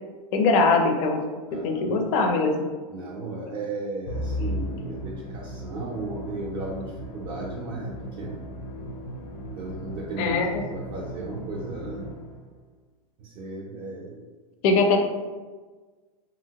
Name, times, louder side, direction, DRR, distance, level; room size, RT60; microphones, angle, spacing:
voice 1, 0.3-1.2 1.6-2.5 10.2-10.5 14.6-15.0, left 3 dB, 35° left, 3 dB, 0.4 m, -21 dB
voice 2, 1.5-2.1 2.9-8.4 9.5-12.1 13.2-14.3, right 2 dB, 40° right, -3 dB, 0.5 m, -35 dB
Musical instrument, 4.1-12.6, equal, 85° left, 0.6 m, -36 dB
2.8 x 2.8 x 2.8 m, 1.4 s
supercardioid pair, 150°, 19 cm